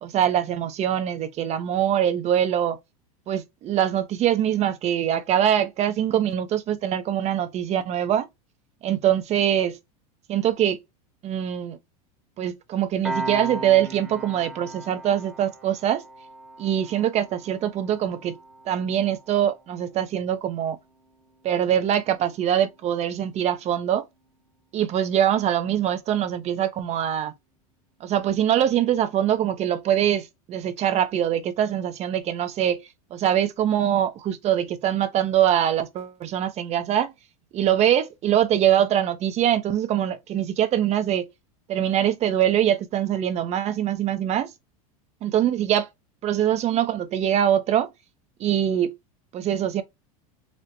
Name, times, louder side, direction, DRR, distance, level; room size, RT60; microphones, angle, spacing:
voice 1, 0.0-2.8 3.3-8.3 8.8-9.8 10.3-10.8 11.2-11.8 12.4-16.0 16.6-18.3 18.7-20.8 21.4-24.0 24.7-27.3 28.0-32.8 33.1-37.1 37.5-41.3 41.7-44.5 45.2-45.9 46.2-47.9 48.4-48.9 49.3-49.8, right 10 dB, 35° right, 0.6 m, -23 dB
Piano, 13.0-24.1, right 2 dB, 5° right, 1.0 m, -39 dB
4.3 x 2.1 x 2.6 m
hypercardioid pair, 110°, 19 cm